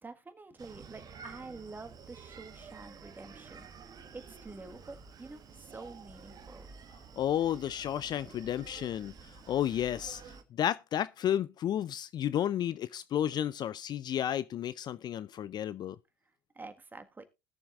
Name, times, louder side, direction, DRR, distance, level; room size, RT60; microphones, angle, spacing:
voice 1, 0.0-3.7 4.1-6.7 16.5-17.2, right 3 dB, 15° right, 1.7 m, -48 dB
Screaming, 0.6-10.4, right 5 dB, 35° right, 1.4 m, -51 dB
voice 2, 7.2-16.0, left 10 dB, 40° left, 0.5 m, -32 dB
20.0 x 7.0 x 2.5 m
hypercardioid pair, 75°, 11 cm